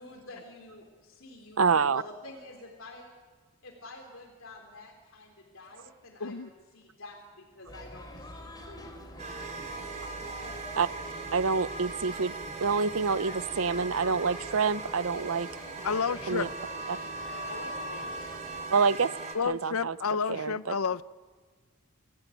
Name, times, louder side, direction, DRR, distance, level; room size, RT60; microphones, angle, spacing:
voice 1, 0.0-3.1 3.6-9.2 17.3-18.3, left 2 dB, 65° left, 3.5 m, -49 dB
voice 2, 1.6-2.0 10.7-10.9 11.3-12.3 12.6-15.5 16.3-16.5 16.9-17.0 18.7-19.1 19.4-19.9 20.3-20.7, right 5 dB, 70° right, 0.7 m, -27 dB
voice 3, 6.2-6.5 15.8-16.5 19.3-21.0, left 5 dB, 85° left, 0.7 m, -30 dB
sound 1, 7.7-18.7, left 1 dB, 20° left, 3.1 m, -47 dB
sound 2, 9.2-19.4, right 3 dB, 35° right, 3.2 m, -39 dB
27.5 x 16.5 x 9.1 m
head